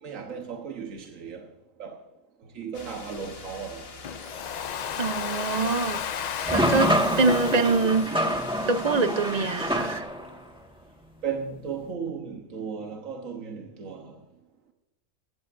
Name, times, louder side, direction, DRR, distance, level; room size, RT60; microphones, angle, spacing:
voice 1, 0.0-1.5 1.8-2.0 2.5-3.9 6.8-7.2 11.2-14.2, right 6 dB, 85° right, 1.5 m, -36 dB
sound 1, 2.7-10.0, left 3 dB, 50° left, 1.6 m, -44 dB
Domestic sounds home sounds, 4.0-9.0, left 8 dB, 85° left, 0.3 m, -34 dB
voice 2, 5.0-6.0 6.5-6.9 7.2-8.1 8.7-10.0, right 3 dB, 40° right, 0.7 m, -24 dB
sound 2, 6.5-10.4, equal, 5° right, 1.6 m, -26 dB
19.0 x 15.5 x 2.6 m
omnidirectional pair, 1.3 m